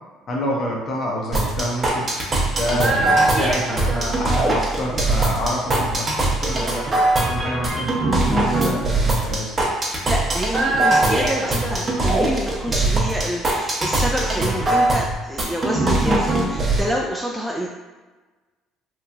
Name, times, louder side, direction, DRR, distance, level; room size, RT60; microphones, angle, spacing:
voice 1, 0.3-2.2 2.5-9.7, equal, 50° left, -1 dB, 0.8 m, -28 dB
sound 1, 1.3-16.8, right 2 dB, 35° right, 0.7 m, -21 dB
voice 2, 10.1-17.7, equal, ahead, -2 dB, 0.3 m, -27 dB
3.0 x 2.4 x 2.4 m, 1.3 s
supercardioid pair, 75°, 0 cm